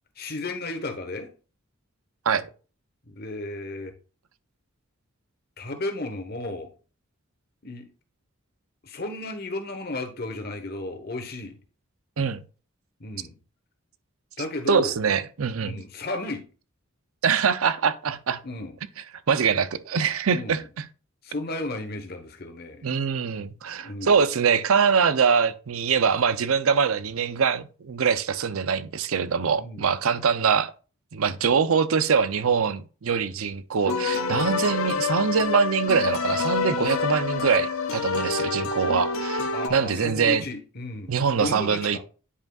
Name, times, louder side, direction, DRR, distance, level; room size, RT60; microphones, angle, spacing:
voice 1, 0.2-1.3 3.1-3.9 5.6-6.7 7.6-7.9 8.8-11.6 13.0-13.4 14.4-15.0 15.6-16.4 18.4-18.8 20.3-20.6 21.2-22.9 23.7-24.2 29.5-29.9 39.5-42.0, left 2 dB, 45° left, 1.2 m, -34 dB
voice 2, 14.7-15.7 17.2-18.4 19.3-20.6 22.8-30.7 31.1-40.4 41.1-42.0, right 6 dB, 85° right, 0.6 m, -23 dB
sound 1, 33.8-39.7, left 5 dB, 85° left, 0.7 m, -27 dB
9.7 x 5.3 x 2.4 m
head